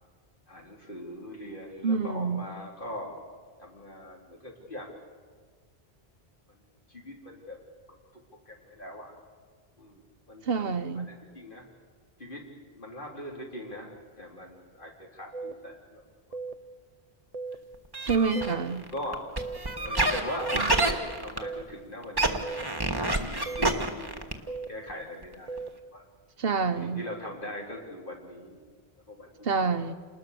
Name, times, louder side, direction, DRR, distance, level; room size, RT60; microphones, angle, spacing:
voice 1, 0.5-3.2 3.6-4.9 6.9-7.6 8.5-9.1 9.8-10.0 10.3-11.6 12.2-12.4 12.7-16.0 18.9-19.2 19.8-22.6 23.0-25.6 25.9-26.0 26.8-28.6 29.1-29.6, left 1 dB, 50° left, -1 dB, 4.4 m, -41 dB
voice 2, 1.8-2.5 10.4-11.1 18.0-18.8 20.5-20.6 26.4-27.0 29.4-29.9, right 5 dB, 65° right, 10 dB, 1.1 m, -27 dB
sound 1, 15.3-15.5 16.3-16.5 17.3-17.5 18.3-18.6 19.4-19.6 20.4-20.6 21.4-21.6 22.4-22.6 23.5-23.7 24.5-24.7 25.5-25.7, right 4 dB, 40° right, 0.9 m, -36 dB
sound 2, 17.9-21.7 22.0-24.6 24.9-25.0 25.2-25.3 25.6-25.7, right 2 dB, 20° right, 1.7 m, -28 dB
28.5 x 20.5 x 6.9 m, 1.5 s
omnidirectional pair, 1.1 m